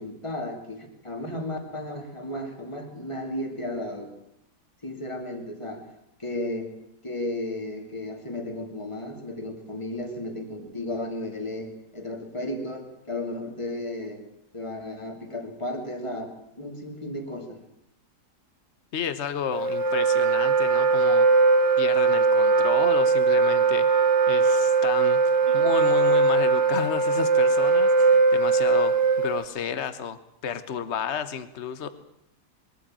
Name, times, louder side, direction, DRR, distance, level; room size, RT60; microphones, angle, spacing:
voice 1, 0.0-4.1 4.8-5.9 6.2-6.7 7.0-14.3 14.5-17.6 25.5-25.6, left 1 dB, 20° left, 4 dB, 2.7 m, -34 dB
voice 2, 18.9-21.4 21.8-23.9 24.3-31.9, left 7 dB, 45° left, 12 dB, 1.3 m, -32 dB
Wind instrument woodwind instrument, 19.5-29.4, right 4 dB, 45° right, 1.9 m, -20 dB
21.5 x 13.5 x 8.9 m, 0.79 s
omnidirectional pair, 1.7 m